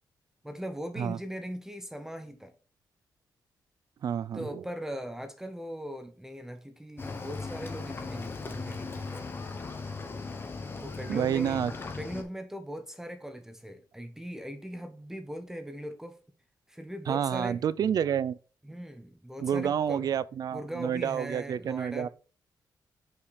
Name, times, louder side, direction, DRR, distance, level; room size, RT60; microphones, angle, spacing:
voice 1, 0.4-2.5 4.3-9.4 10.8-11.6 11.9-16.2 16.7-17.6 18.6-20.1 20.5-22.1, equal, 5° right, 0.7 m, -40 dB
voice 2, 4.0-4.6 11.1-11.7 17.1-18.4 19.4-22.1, right 8 dB, 55° right, 0.4 m, -29 dB
Cricket / Waves surf, 7.0-12.2, left 4 dB, 30° left, 1.0 m, -38 dB
5.7 x 4.9 x 4.1 m
wide cardioid pair, 140°, 8 cm